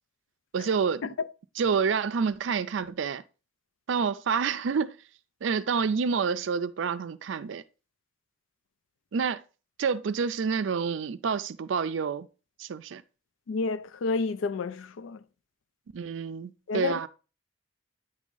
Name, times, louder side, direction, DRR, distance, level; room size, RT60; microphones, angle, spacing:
voice 1, 0.5-1.1 1.6-3.2 3.9-4.9 5.4-7.6 9.1-9.4 9.8-12.3 12.6-13.0 15.9-17.1, right 6 dB, 70° right, 0.4 m, -28 dB
voice 2, 13.5-15.2 16.7-17.0, left 4 dB, 80° left, 0.4 m, -30 dB
9.1 x 3.6 x 3.8 m
head